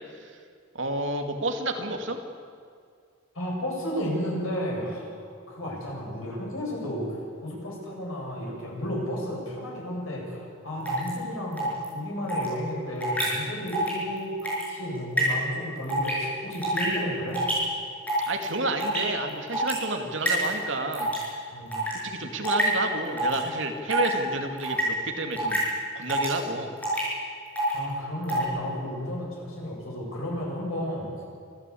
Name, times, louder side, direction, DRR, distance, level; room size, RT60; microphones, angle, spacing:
voice 1, 0.7-2.2 18.3-21.1 22.0-25.6 26.0-26.7, right 2 dB, 65° right, 4 dB, 2.4 m, -30 dB
voice 2, 3.3-5.2 5.5-17.4 21.5-21.8 27.7-31.1, equal, 90° left, -2 dB, 8.0 m, -33 dB
sound 1, 10.9-11.1 11.6-11.8 12.3-12.5 13.0-13.2 13.7-13.9 14.2-14.6 15.2-15.3 15.9-16.1 16.5-16.9 17.3-17.5 18.1-18.4 18.8-19.0 19.5-19.7 20.3-20.5 20.9-21.2 21.7-21.9 22.4-22.6 23.2-23.4 23.9-24.1 24.6-24.8 25.4-25.6 26.1-26.4 26.8-27.0 27.6-27.7 28.2-28.4, equal, 10° left, 7.1 m, -27 dB
26.0 x 14.5 x 8.6 m, 2.2 s
head